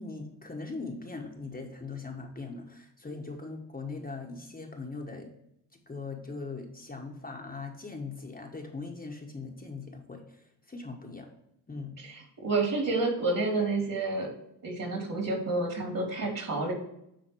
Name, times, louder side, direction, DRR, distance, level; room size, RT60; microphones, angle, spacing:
voice 1, 0.0-5.3 5.9-11.3 11.7-11.9, left 3 dB, 20° left, 1 dB, 1.3 m, -40 dB
voice 2, 12.0-14.3 14.6-16.7, right 3 dB, 50° right, 1 dB, 3.1 m, -29 dB
9.4 x 3.7 x 4.7 m, 0.79 s
supercardioid pair, 65°, 43 cm